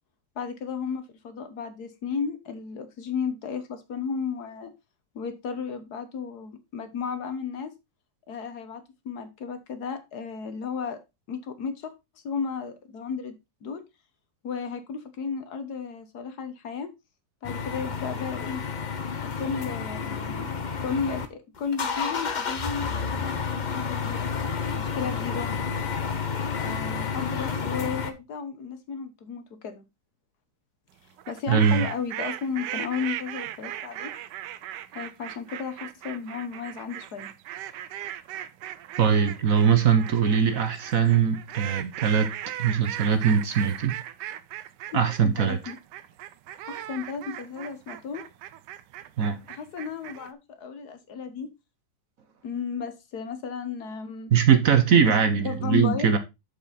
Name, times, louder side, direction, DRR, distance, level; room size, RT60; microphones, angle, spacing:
voice 1, 0.3-4.7 5.1-7.7 8.3-11.0 11.3-11.9 12.2-13.3 13.6-13.8 14.4-16.9 17.4-18.6 19.2-20.5 20.8-23.0 23.5-24.3 24.7-25.5 26.6-29.8 31.3-34.1 34.9-37.3 44.9-45.8 46.6-48.2 49.5-51.5 52.4-54.3 55.1-56.2, left 6 dB, 65° left, 1.5 m, -34 dB
sound 1, 17.4-21.3 21.6-28.1, left 6 dB, 45° left, 0.6 m, -30 dB
sound 2, 31.2-50.3, right 12 dB, 80° right, 1.2 m, -37 dB
voice 2, 31.5-31.9 39.0-42.3 42.6-44.0 44.9-45.6 49.2-49.4 54.3-56.2, right 7 dB, 55° right, 1.2 m, -21 dB
6.8 x 6.4 x 4.1 m
omnidirectional pair, 1.9 m